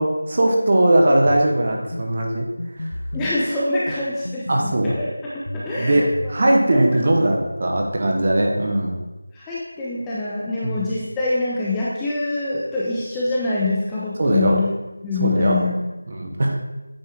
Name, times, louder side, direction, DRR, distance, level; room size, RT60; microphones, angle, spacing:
voice 1, 0.0-2.5 2.8-2.9 4.5-4.9 5.7-9.0 10.6-10.8 14.2-14.6 15.2-15.6 16.1-16.6, right 1 dB, 35° right, 1 dB, 0.9 m, -19 dB
sound 1, 1.3-1.5 1.9-2.1 2.6-3.3 4.3-5.0 5.5-6.4, left 1 dB, 90° left, 0.5 m, -31 dB
voice 2, 3.1-6.1 6.7-6.8 9.3-14.7 15.0-15.8, left 2 dB, 5° left, -8 dB, 0.5 m, -25 dB
9.0 x 4.3 x 3.6 m, 1.1 s
figure-of-eight pair, 175°, 0 cm